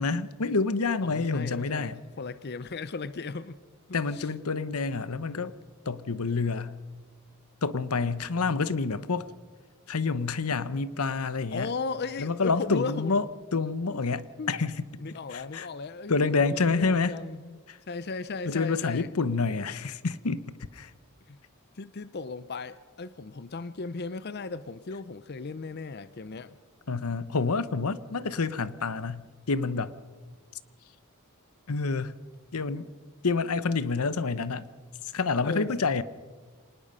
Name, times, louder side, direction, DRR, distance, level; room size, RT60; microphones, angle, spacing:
voice 1, 0.0-2.0 3.9-5.5 5.9-6.7 7.6-9.3 9.9-11.7 12.2-13.2 13.5-14.8 15.3-15.7 16.1-17.1 17.7-17.8 18.5-20.4 20.7-20.9 26.9-29.9 31.7-32.2 32.5-32.9 33.2-34.7 35.1-36.0, left 4 dB, 80° left, 15 dB, 0.9 m, -28 dB
voice 2, 1.0-3.6 4.1-4.3 11.5-13.2 13.9-14.0 14.4-14.5 15.0-17.6 17.9-19.1 21.3-21.4 21.7-26.6 35.4-35.7, left 4 dB, 45° left, 15 dB, 0.6 m, -36 dB
25.5 x 19.5 x 5.5 m, 1.4 s
head